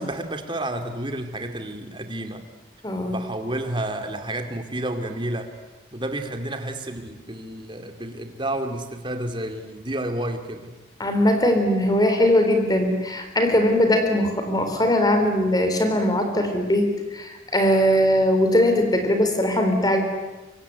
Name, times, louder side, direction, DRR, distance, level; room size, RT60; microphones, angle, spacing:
voice 1, 0.0-2.5 3.0-5.5 5.9-10.7, right 1 dB, 25° right, 6 dB, 2.5 m, -30 dB
voice 2, 2.8-3.2 11.0-20.0, left 1 dB, 20° left, 6 dB, 4.0 m, -20 dB
24.5 x 24.5 x 9.6 m, 1.1 s
head